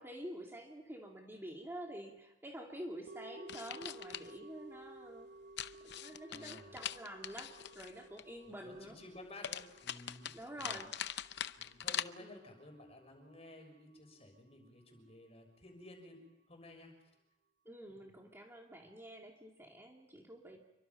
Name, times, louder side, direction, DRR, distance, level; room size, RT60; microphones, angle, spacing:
voice 1, 0.0-5.3 5.8-9.0 10.3-10.9 12.2-12.4 17.7-20.6, right 1 dB, 10° right, 0 dB, 2.4 m, -48 dB
sound 1, 3.1-13.4 13.6-13.7, right 2 dB, 40° right, 1.0 m, -56 dB
sound 2, 3.5-4.3 5.6-8.2 9.4-12.0, left 10 dB, 60° left, 0.7 m, -42 dB
voice 2, 6.3-6.8 8.5-10.8 11.6-16.2 16.5-16.9 17.9-18.0, left 1 dB, 30° left, 4 dB, 6.4 m, -54 dB
28.0 x 24.0 x 5.7 m, 0.98 s
head